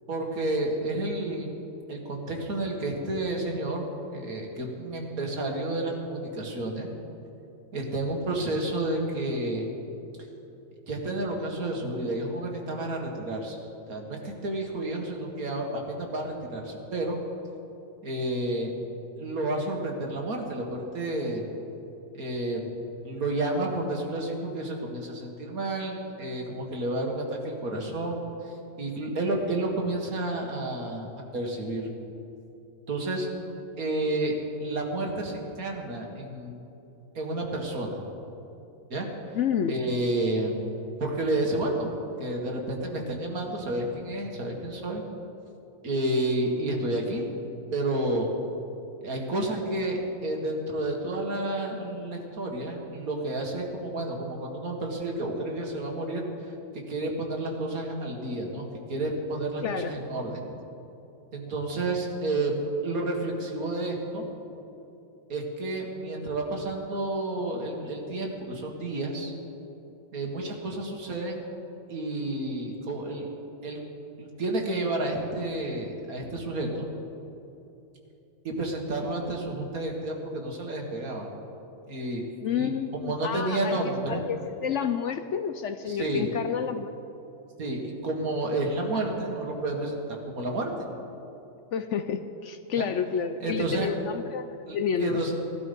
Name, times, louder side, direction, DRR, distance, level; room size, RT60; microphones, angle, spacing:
voice 1, 0.1-1.5 1.9-6.9 7.7-9.7 10.9-13.6 13.9-17.2 18.0-18.7 19.2-21.4 22.1-22.7 23.0-31.1 31.3-31.9 32.9-33.3 33.8-36.6 37.1-38.0 38.9-39.4 39.7-40.6 41.0-41.9 42.2-45.0 45.8-47.3 47.7-48.3 49.0-56.2 56.9-60.4 61.3-64.2 65.3-69.3 70.1-71.4 71.9-73.3 73.6-73.8 74.2-76.9 78.4-81.3 81.9-84.2 85.9-86.3 87.6-90.7 92.7-92.9 93.4-93.9 94.7-95.3, right 2 dB, 70° right, 0 dB, 2.3 m, -30 dB
voice 2, 39.3-39.8 59.6-59.9 82.4-83.8 84.1-86.9 91.7-95.3, left 7 dB, 65° left, 9 dB, 0.8 m, -30 dB
17.5 x 12.0 x 5.3 m, 2.9 s
omnidirectional pair, 1.6 m